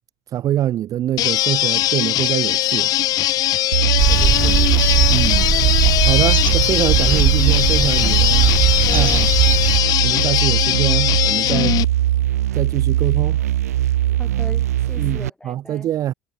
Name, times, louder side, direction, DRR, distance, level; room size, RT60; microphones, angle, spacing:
voice 1, 0.3-2.9 5.1-5.4 6.0-8.5 8.9-9.3 10.0-11.8 12.5-13.4 15.0-16.1, right 12 dB, 45° right, 1.3 m, -24 dB
sound 1, 1.2-11.9, left 14 dB, 50° left, 1.4 m, -20 dB
sound 2, 3.7-15.3, right 13 dB, 80° right, 1.4 m, -20 dB
sound 3, 4.0-9.8, right 6 dB, 25° right, 0.7 m, -20 dB
voice 2, 4.1-4.8 6.5-6.6 14.2-15.9, left 2 dB, 10° left, 7.6 m, -39 dB
hypercardioid pair, 70°, 8 cm